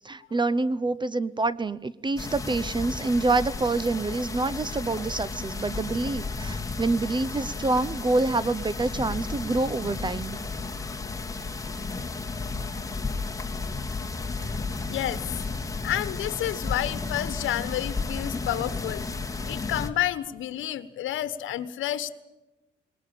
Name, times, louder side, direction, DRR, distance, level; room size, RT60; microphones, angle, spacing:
voice 1, 0.0-10.4, right 3 dB, 25° right, 18 dB, 0.7 m, -27 dB
sound 1, 2.1-19.9, left 3 dB, 15° left, 2.3 m, -33 dB
voice 2, 14.9-15.2 15.8-19.0 19.5-22.1, left 12 dB, 80° left, 13 dB, 1.3 m, -30 dB
19.5 x 19.0 x 8.6 m, 1.0 s
cardioid pair, 90°, 20 cm